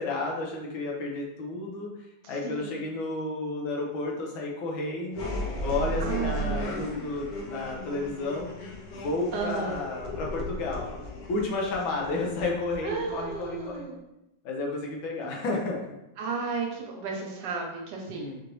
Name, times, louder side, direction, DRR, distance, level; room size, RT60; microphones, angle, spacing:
voice 1, 0.0-1.9 2.3-5.3 5.6-8.5 8.9-10.9 11.3-13.9 14.4-15.8 18.2-18.4, left 2 dB, 85° left, -1 dB, 1.6 m, -31 dB
voice 2, 2.2-2.9 6.0-6.9 9.3-9.7 12.8-14.0 15.2-15.3 16.2-18.3, right 5 dB, 70° right, 0 dB, 1.3 m, -34 dB
sound 1, 5.1-13.8, equal, 70° left, 1.3 m, -35 dB
4.8 x 2.6 x 3.0 m, 0.91 s
omnidirectional pair, 2.1 m